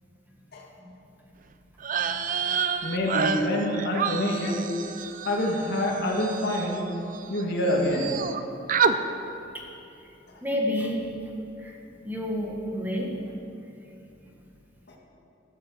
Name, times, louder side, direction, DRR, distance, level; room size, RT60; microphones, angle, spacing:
sound 1, 1.8-7.4 7.7-8.4 8.7-9.0, right 6 dB, 45° right, 0.5 m, -29 dB
voice 1, 2.8-4.6 5.2-6.8 7.3-8.2 14.9-15.0, left 1 dB, 60° left, -1 dB, 2.1 m, -26 dB
voice 2, 10.4-11.0 11.6-11.7 12.0-13.1, left 1 dB, 10° right, -2 dB, 1.5 m, -29 dB
13.5 x 7.5 x 7.5 m, 2.8 s
head